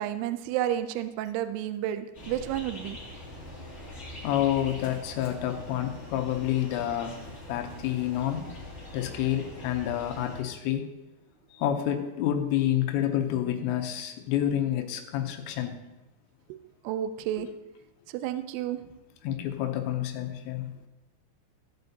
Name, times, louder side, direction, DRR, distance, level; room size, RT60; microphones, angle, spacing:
voice 1, 0.0-3.0 16.5-16.6 16.8-17.5 18.1-18.8, right 11 dB, 80° right, 11 dB, 2.4 m, -31 dB
sound 1, 2.1-10.4, left 1 dB, 20° left, 2.4 m, -43 dB
voice 2, 3.8-8.5 8.9-10.9 11.5-15.8 17.4-17.5 19.2-20.8, left 11 dB, 90° left, 5 dB, 3.1 m, -29 dB
16.0 x 7.7 x 2.8 m, 1.0 s
omnidirectional pair, 5.0 m